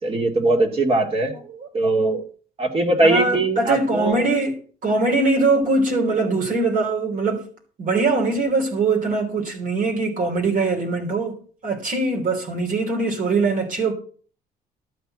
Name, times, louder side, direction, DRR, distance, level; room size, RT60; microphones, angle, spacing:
voice 1, 0.0-1.3 1.7-2.2 2.6-4.2, right 2 dB, 35° right, 2.4 m, -20 dB
voice 2, 1.3-1.7 3.0-4.6 4.8-7.5 7.8-13.9, right 3 dB, 55° right, 3.2 m, -22 dB
12.5 x 4.7 x 7.7 m
cardioid pair, 110°, 17 cm